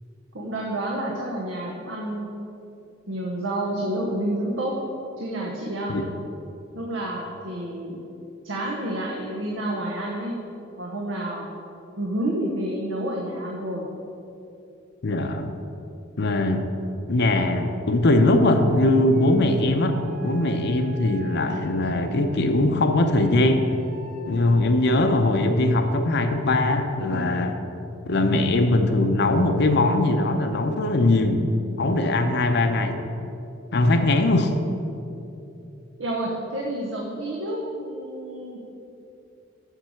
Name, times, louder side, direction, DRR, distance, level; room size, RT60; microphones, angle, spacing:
voice 1, 0.3-2.3 3.1-4.7 5.2-6.0 6.7-8.0 8.4-10.4 10.8-11.5 12.0-13.9 36.0-38.6, right 1 dB, 85° right, -2 dB, 1.0 m, -29 dB
voice 2, 15.0-15.5 16.2-16.7 17.1-20.0 20.2-23.6 24.3-27.6 28.1-31.5 31.8-33.0 33.7-34.5, left 2 dB, 60° left, 6 dB, 0.6 m, -21 dB
sound 1, 19.1-22.3 23.1-24.6, right 1 dB, 45° right, 1.2 m, -45 dB
7.4 x 6.6 x 6.4 m, 2.7 s
head